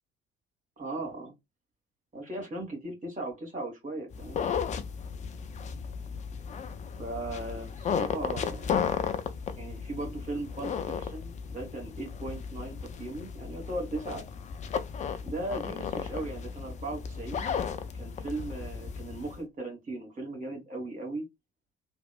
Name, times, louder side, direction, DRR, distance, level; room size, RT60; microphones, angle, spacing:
voice 1, 0.8-1.3 2.1-4.6 7.0-8.9 9.5-14.2 15.2-17.6 17.9-21.2, right 2 dB, 25° right, 1.4 m, -38 dB
sound 1, 4.1-19.4, left 7 dB, 25° left, 0.3 m, -35 dB
2.9 x 2.0 x 2.3 m
figure-of-eight pair, 50°, 31 cm